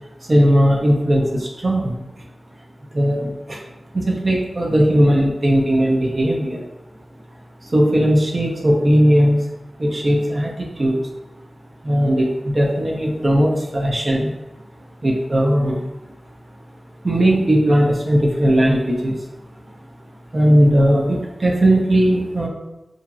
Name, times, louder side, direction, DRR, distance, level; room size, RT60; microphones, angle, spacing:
voice 1, 0.2-2.0 2.9-3.6 3.9-6.6 7.6-9.5 9.8-11.0 11.8-14.3 15.0-15.8 17.0-19.2 20.3-22.5, equal, 50° right, -1 dB, 0.5 m, -17 dB
2.9 x 2.5 x 2.4 m, 0.98 s
cardioid pair, 45°, 0 cm